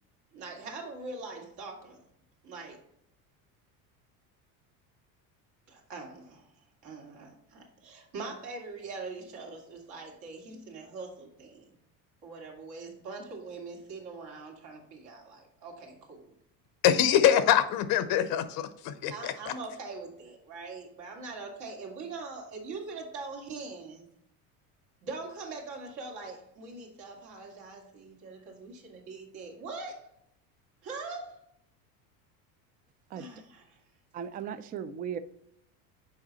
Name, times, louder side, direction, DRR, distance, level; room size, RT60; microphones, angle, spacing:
voice 1, 0.3-2.0 2.4-2.8 5.7-6.5 6.8-11.7 12.2-16.3 19.1-24.1 25.0-30.1 30.8-31.4 33.1-33.8, right 3 dB, 65° right, 0 dB, 2.3 m, -42 dB
voice 2, 16.8-19.3, left 10 dB, 60° left, 12 dB, 0.7 m, -24 dB
voice 3, 34.1-35.2, right 8 dB, 25° right, 13 dB, 0.3 m, -36 dB
6.4 x 4.9 x 4.0 m, 0.73 s
supercardioid pair, 115°, 42 cm